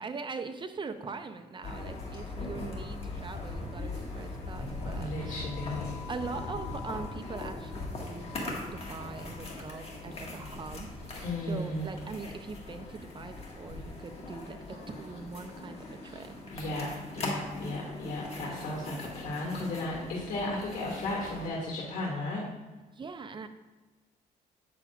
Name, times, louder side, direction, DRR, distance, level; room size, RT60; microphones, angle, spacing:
voice 1, 0.0-5.5 6.1-16.4 22.9-23.5, right 4 dB, 30° right, 8 dB, 0.6 m, -42 dB
sound 1, 1.6-21.5, left 2 dB, 40° left, 1.8 m, -40 dB
voice 2, 4.9-6.0 11.2-12.1 16.5-22.5, left 2 dB, 55° left, -2 dB, 1.8 m, -35 dB
8.4 x 6.9 x 2.4 m, 1.2 s
cardioid pair, 90°, 15 cm